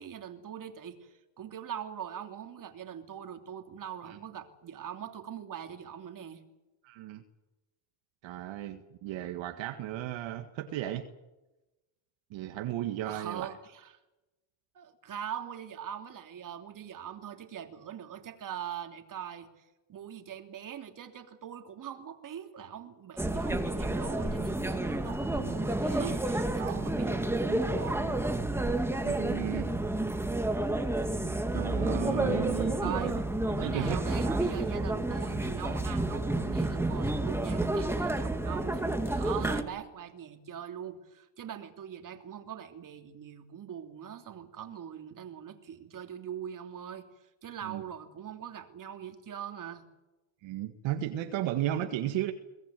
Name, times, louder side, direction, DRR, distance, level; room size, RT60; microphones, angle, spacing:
voice 1, 0.0-6.4 13.0-13.9 14.7-28.2 32.8-33.1 33.5-49.9, right 9 dB, 40° right, 6 dB, 3.1 m, -42 dB
voice 2, 6.8-7.2 8.2-11.1 12.3-13.5 26.0-26.2 26.6-26.8 29.0-29.7 31.5-33.2 33.5-34.0 34.3-34.4 47.6-47.8 50.4-52.3, right 12 dB, 65° right, 6 dB, 1.9 m, -34 dB
sound 1, 23.2-39.6, right 1 dB, 5° right, 2.0 m, -30 dB
22.5 x 18.5 x 9.2 m, 1.0 s
cardioid pair, 120°, 48 cm